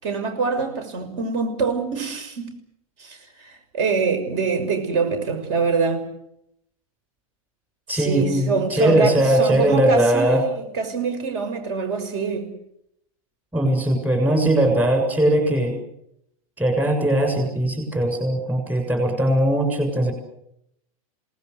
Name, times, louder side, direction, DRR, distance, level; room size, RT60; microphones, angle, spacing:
voice 1, 0.0-2.5 3.0-6.0 7.9-12.5, right 4 dB, 55° right, 8 dB, 6.3 m, -25 dB
voice 2, 7.9-10.4 13.5-15.8 16.6-20.1, right 1 dB, 10° right, 5 dB, 6.9 m, -20 dB
28.5 x 19.5 x 8.1 m, 0.78 s
supercardioid pair, 145°, 18 cm